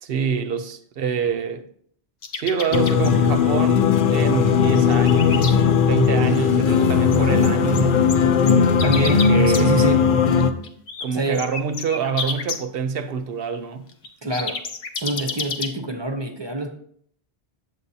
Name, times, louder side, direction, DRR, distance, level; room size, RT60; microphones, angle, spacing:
voice 1, 0.0-1.7 2.3-5.6 5.9-8.1 9.0-9.7 11.0-13.9, right 6 dB, 65° right, 0.8 m, -26 dB
sound 1, 2.2-3.1 4.3-4.4 4.6-5.5 6.0-6.1 6.4-6.5 6.8-9.6 10.4-11.1 11.3-12.6 13.9-15.7, left 5 dB, 75° left, 1.1 m, -30 dB
sound 2, 2.7-10.5, left 6 dB, 60° left, 0.7 m, -18 dB
voice 2, 8.8-10.0 11.1-11.5 14.2-14.6 15.0-16.7, right 2 dB, 30° right, 0.6 m, -25 dB
8.1 x 8.0 x 2.7 m
omnidirectional pair, 1.1 m